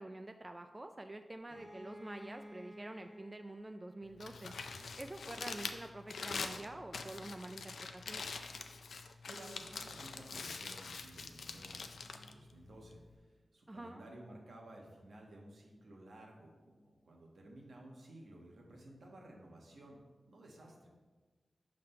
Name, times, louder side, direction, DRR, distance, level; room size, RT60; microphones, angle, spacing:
voice 1, 0.0-4.5 5.0-8.2 13.7-14.2, right 1 dB, 30° right, 6 dB, 0.3 m, -47 dB
Bowed string instrument, 1.5-5.1, equal, 45° left, 1.2 m, -54 dB
Crumpling crinkling, 4.0-13.2, left 4 dB, 85° left, 0.4 m, -45 dB
voice 2, 9.3-13.2 13.5-20.0 20.2-20.9, right 1 dB, 80° right, -1 dB, 1.3 m, -55 dB
5.7 x 3.8 x 5.5 m, 1.3 s
cardioid pair, 50°, 0 cm